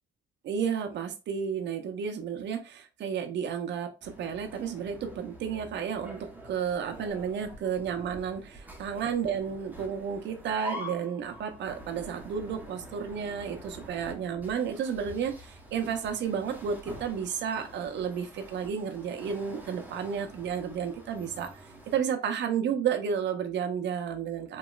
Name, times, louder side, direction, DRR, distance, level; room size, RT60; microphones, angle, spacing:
voice 1, 0.4-24.6, right 7 dB, 65° right, 5 dB, 0.6 m, -32 dB
sound 1, 4.0-22.0, equal, 10° right, 0.9 m, -46 dB
3.0 x 2.9 x 2.3 m, 0.30 s
cardioid pair, 90°, 20 cm